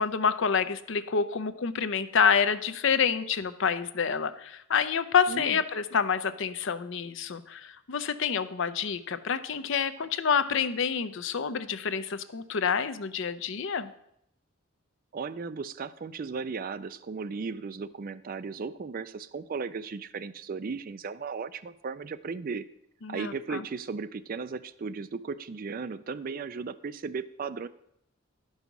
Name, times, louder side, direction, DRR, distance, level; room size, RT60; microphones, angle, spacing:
voice 1, 0.0-13.9 23.0-23.6, left 6 dB, 60° left, 12 dB, 0.6 m, -28 dB
voice 2, 5.3-5.6 15.1-22.7 23.1-27.7, right 5 dB, 40° right, 14 dB, 0.4 m, -36 dB
11.0 x 5.5 x 5.9 m, 0.76 s
head